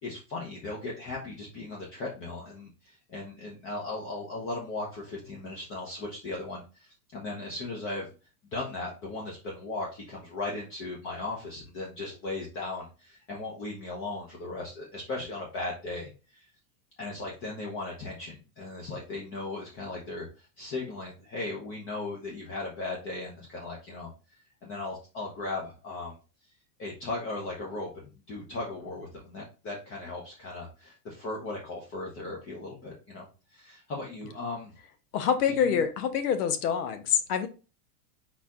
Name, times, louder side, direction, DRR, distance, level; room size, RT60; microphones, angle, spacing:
voice 1, 0.0-8.1 8.5-16.5 17.0-26.2 26.8-33.3 33.5-34.7 35.6-35.8, left 2 dB, 30° left, -3 dB, 0.9 m, -37 dB
voice 2, 35.1-37.5, left 8 dB, 70° left, 9 dB, 1.0 m, -26 dB
4.3 x 4.1 x 2.4 m, 0.33 s
supercardioid pair, 150°, 47 cm